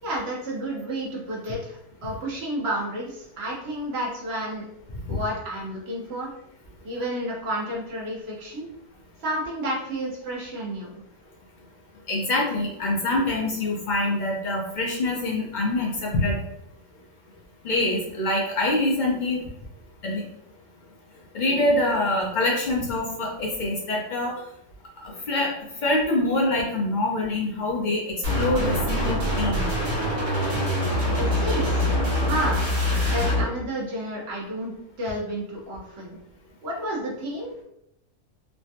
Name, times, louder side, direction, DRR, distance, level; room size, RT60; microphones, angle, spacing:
voice 1, 0.0-4.7 5.1-6.3 6.8-8.7 9.2-10.9 31.2-32.6 33.1-34.7 35.0-36.2 36.6-37.6, right 1 dB, 50° right, -3 dB, 1.0 m, -31 dB
voice 2, 12.1-16.4 17.6-19.4 20.0-20.2 21.3-24.3 25.0-25.5 25.8-29.7, left 2 dB, 70° left, -3 dB, 0.4 m, -25 dB
sound 1, 28.2-33.4, left 1 dB, 70° right, 1.4 m, -24 dB
3.3 x 2.2 x 2.7 m, 0.78 s
omnidirectional pair, 1.6 m